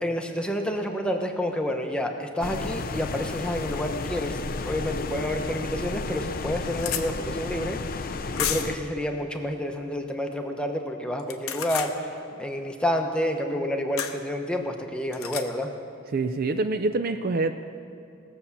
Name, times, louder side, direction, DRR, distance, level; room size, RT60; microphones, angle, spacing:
voice 1, 0.0-15.7, equal, 5° left, 4 dB, 0.7 m, -29 dB
sound 1, 2.4-8.8, left 3 dB, 40° left, 0.5 m, -33 dB
sound 2, 5.4-5.5 6.0-6.1 6.3-7.0 8.4-8.8 11.2-11.9 14.0-14.2 15.1-15.5, left 9 dB, 75° left, 0.8 m, -31 dB
voice 2, 16.1-17.5, right 3 dB, 45° right, 8 dB, 0.4 m, -25 dB
18.0 x 6.8 x 7.1 m, 2.5 s
head